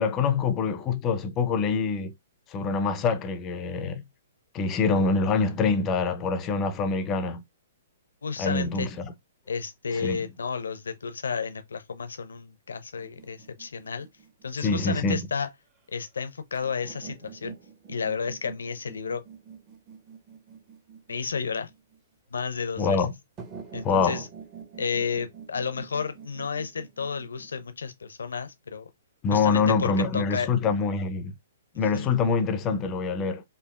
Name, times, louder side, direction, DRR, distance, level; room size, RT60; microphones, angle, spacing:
voice 1, 0.0-2.1 2.5-4.0 4.5-7.4 8.4-9.1 10.0-10.2 14.6-15.2 22.8-23.1 23.8-24.2 29.2-31.3 31.7-33.4, left 4 dB, 25° left, 0.6 m, -25 dB
voice 2, 8.2-8.9 9.5-14.1 14.4-15.5 15.9-17.6 17.9-19.2 21.1-21.7 22.3-23.0 23.7-24.3 24.8-28.9 29.3-30.5 31.9-32.1, left 5 dB, 70° left, 0.7 m, -32 dB
sound 1, 13.0-15.0 16.5-22.0 23.4-27.6, right 6 dB, 25° right, 0.9 m, -46 dB
4.6 x 2.7 x 2.3 m
figure-of-eight pair, 120°, 0 cm